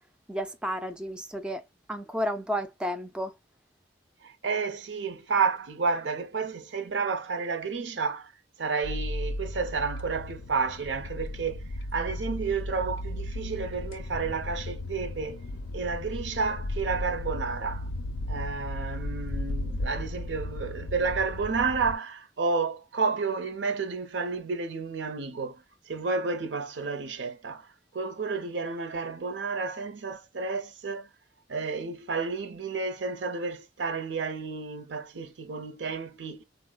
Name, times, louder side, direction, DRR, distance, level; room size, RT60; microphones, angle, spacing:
voice 1, 0.3-3.3, equal, 5° right, 0.3 m, -32 dB
voice 2, 4.2-8.3 8.6-15.4 15.7-17.9 18.3-27.7 27.9-31.1 31.5-36.4, right 4 dB, 75° right, 0.6 m, -31 dB
sound 1, 8.8-22.0, left 1 dB, 85° left, 0.4 m, -35 dB
3.8 x 2.0 x 2.2 m
head